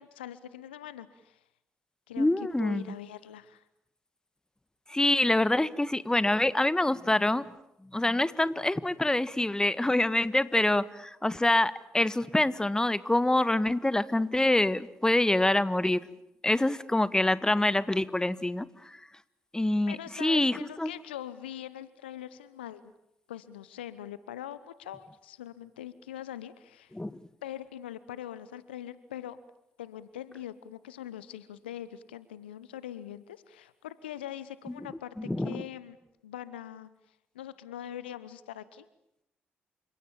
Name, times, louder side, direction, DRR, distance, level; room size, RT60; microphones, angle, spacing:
voice 1, 0.0-1.4 2.1-2.3 2.6-3.6 19.9-22.9 23.3-27.0 27.4-29.4 29.8-36.0 36.2-36.9 37.3-38.8, left 11 dB, 85° left, 16 dB, 1.0 m, -42 dB
voice 2, 2.2-2.8 4.9-7.4 7.9-16.0 16.4-19.0 19.5-20.9 26.9-27.2 35.2-35.6, left 1 dB, 10° left, 16 dB, 1.5 m, -26 dB
29.5 x 26.5 x 7.3 m, 0.81 s
figure-of-eight pair, 40°, 5 cm